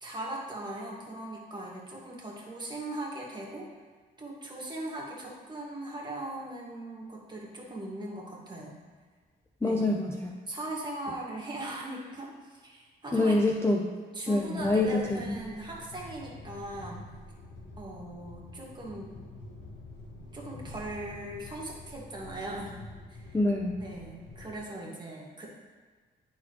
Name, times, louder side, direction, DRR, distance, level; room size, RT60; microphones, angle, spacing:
voice 1, 0.0-3.7 4.2-8.8 9.6-9.8 10.5-13.5 14.1-17.1 17.8-19.2 20.3-22.8 23.1-23.4 23.8-25.5, right 1 dB, 20° right, -4 dB, 1.9 m, -39 dB
voice 2, 9.6-10.4 13.1-13.9 14.3-15.4 23.3-23.8, left 2 dB, 15° left, 0 dB, 0.6 m, -26 dB
sound 1, 14.5-24.6, left 2 dB, 80° left, 1.5 m, -47 dB
11.0 x 4.0 x 3.2 m, 1.5 s
cardioid pair, 90°, 20 cm